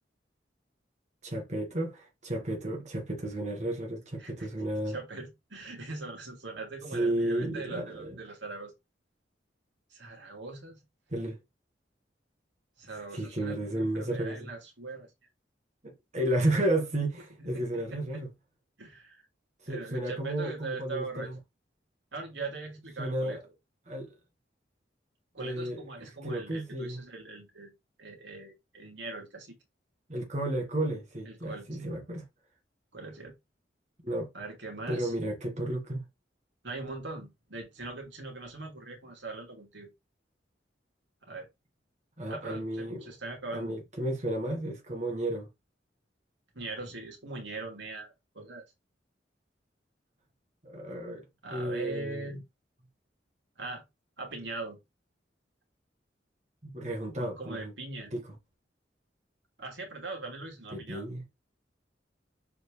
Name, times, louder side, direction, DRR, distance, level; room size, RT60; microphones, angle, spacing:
voice 1, 1.2-5.0 6.9-8.2 11.1-11.4 13.1-14.5 15.8-18.3 19.6-21.4 23.0-23.4 23.9-24.1 25.4-27.0 30.1-32.2 34.0-34.3 34.9-36.1 42.2-43.1 43.5-45.5 50.6-52.4 56.6-57.7 58.1-58.3 60.7-61.2, right 1 dB, 40° right, 1.7 m, -33 dB
voice 2, 4.9-8.7 9.9-10.8 12.8-15.1 17.4-18.2 18.8-19.2 19.7-21.3 22.1-23.4 25.3-27.7 28.0-29.6 31.3-31.9 32.9-33.3 34.3-35.1 36.6-39.9 41.2-41.5 42.3-43.8 46.5-48.6 51.4-52.4 53.6-53.8 54.2-54.8 57.2-58.1 59.6-61.1, right 3 dB, 80° right, 2.7 m, -41 dB
7.1 x 4.6 x 3.4 m
head